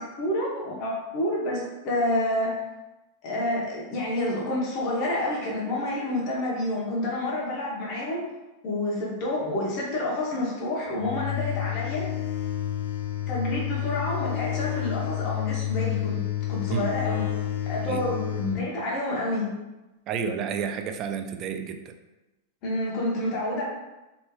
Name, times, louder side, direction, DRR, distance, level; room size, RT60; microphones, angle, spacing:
voice 1, 0.0-2.5 3.2-8.2 8.6-12.1 13.3-16.2 16.5-17.3 17.7-19.5 22.6-23.7, left 1 dB, 45° left, -4 dB, 1.0 m, -28 dB
sound 1, 11.0-18.6, left 12 dB, 80° left, 0.4 m, -30 dB
voice 2, 20.1-21.9, right 7 dB, 40° right, 7 dB, 0.3 m, -30 dB
3.1 x 3.0 x 2.2 m, 1.0 s
hypercardioid pair, 115°, 0 cm